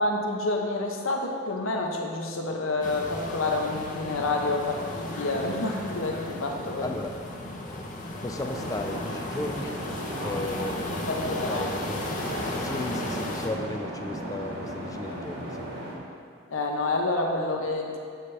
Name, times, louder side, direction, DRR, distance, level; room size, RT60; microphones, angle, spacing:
voice 1, 0.0-6.9 10.2-11.7 16.5-18.0, left 2 dB, 80° left, 1 dB, 0.9 m, -29 dB
sound 1, 2.8-13.5, left 1 dB, 40° left, 0.8 m, -35 dB
voice 2, 6.8-7.2 8.2-9.8 10.2-12.1 12.6-15.7, left 2 dB, 15° left, 5 dB, 0.3 m, -35 dB
sound 2, 8.4-16.0, right 1 dB, 50° right, 1.4 m, -36 dB
8.2 x 7.4 x 3.3 m, 2.4 s
head